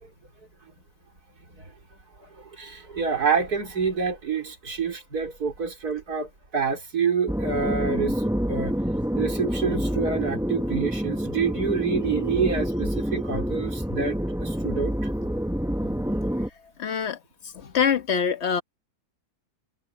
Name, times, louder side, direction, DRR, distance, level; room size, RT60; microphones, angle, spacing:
voice 1, 2.2-8.7 9.2-15.1, right 5 dB, 75° right, 4.8 m, -27 dB
sound 1, 7.3-16.5, equal, ahead, 0.9 m, -27 dB
voice 2, 16.8-17.2 17.5-18.6, left 7 dB, 45° left, 1.4 m, -24 dB
omnidirectional pair, 1.7 m